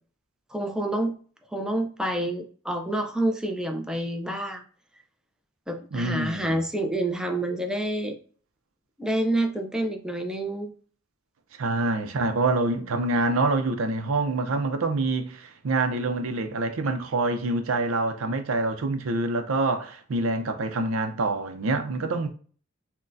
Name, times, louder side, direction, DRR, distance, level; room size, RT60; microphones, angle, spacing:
voice 1, 0.5-1.2 1.5-4.6 5.7-8.2 9.0-10.7, right 1 dB, 5° right, 0.4 m, -28 dB
voice 2, 5.9-6.6 11.6-22.3, right 2 dB, 90° right, 0.5 m, -26 dB
6.0 x 2.2 x 2.6 m
head